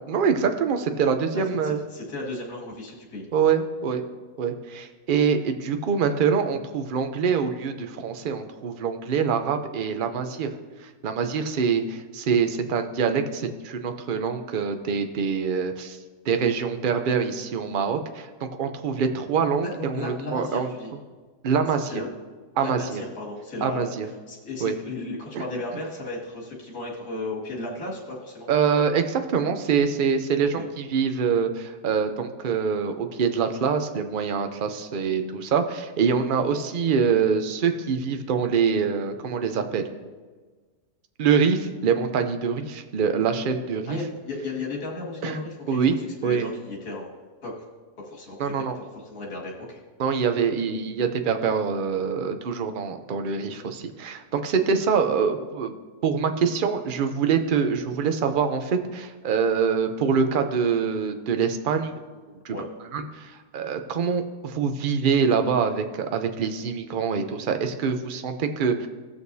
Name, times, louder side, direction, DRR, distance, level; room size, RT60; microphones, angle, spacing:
voice 1, 0.1-1.8 3.3-4.0 4.4-10.5 11.0-16.0 16.3-20.7 21.4-22.0 22.6-23.0 23.6-24.1 24.6-24.7 25.3-25.4 28.5-39.8 41.2-44.0 45.2-45.4 45.7-46.0 46.2-46.5 48.4-48.8 50.0-55.7 56.0-61.9 62.3-62.6 62.9-68.9, right 6 dB, 55° right, 7 dB, 0.6 m, -25 dB
voice 2, 1.3-3.3 19.6-20.9 21.8-22.1 22.6-28.5 30.6-30.7 43.9-47.1 47.4-47.5 48.0-49.8 62.5-62.7, left 2 dB, 70° left, -3 dB, 2.7 m, -35 dB
18.5 x 6.4 x 2.7 m, 1.4 s
omnidirectional pair, 1.7 m